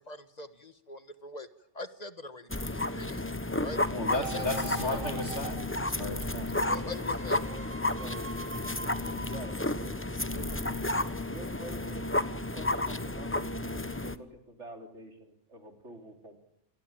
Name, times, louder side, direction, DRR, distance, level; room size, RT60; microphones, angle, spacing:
voice 1, 0.0-1.5 1.7-3.2 3.6-3.9 4.2-5.2 6.5-7.4, left 2 dB, 35° left, 10 dB, 1.5 m, -43 dB
sound 1, 2.5-14.2, left 2 dB, 10° left, 0.9 m, -32 dB
voice 2, 3.9-6.5, left 2 dB, 65° left, 3 dB, 2.9 m, -34 dB
sound 2, 4.1-10.3 10.8-10.9, right 3 dB, 25° right, 1.8 m, -43 dB
voice 3, 7.9-8.3 9.2-9.5 9.8-10.8 11.2-16.4, right 1 dB, 75° right, 4 dB, 3.9 m, -47 dB
28.0 x 21.0 x 9.0 m, 0.79 s
omnidirectional pair, 1.2 m